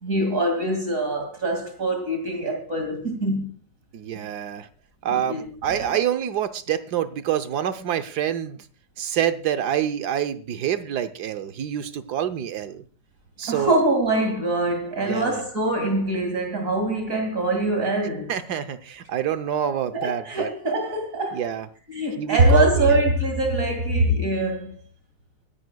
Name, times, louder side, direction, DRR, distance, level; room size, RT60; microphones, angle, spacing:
voice 1, 0.0-3.5 5.1-5.4 5.7-5.9 13.4-18.3 19.9-21.4 21.9-24.8, right 1 dB, 45° right, 2.5 m, -23 dB
voice 2, 3.9-4.7 5.0-8.7 9.0-12.8 13.4-13.8 15.0-15.4 18.3-20.5 21.3-21.7 22.2-23.0, right 10 dB, 65° right, 1.2 m, -27 dB
24.0 x 10.5 x 2.2 m
omnidirectional pair, 2.0 m